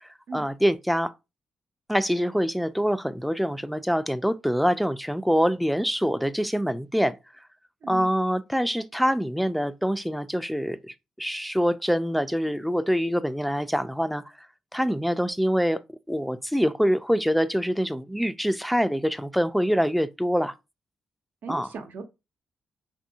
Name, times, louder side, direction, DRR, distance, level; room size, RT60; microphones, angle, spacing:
voice 1, 0.3-1.1 1.9-7.2 7.9-14.2 14.7-15.8 16.1-20.5 21.5-21.7, equal, ahead, 0.3 m, -25 dB
voice 2, 21.4-22.0, right 5 dB, 70° right, 0.6 m, -37 dB
2.7 x 2.6 x 2.7 m
supercardioid pair, 55°, 3 cm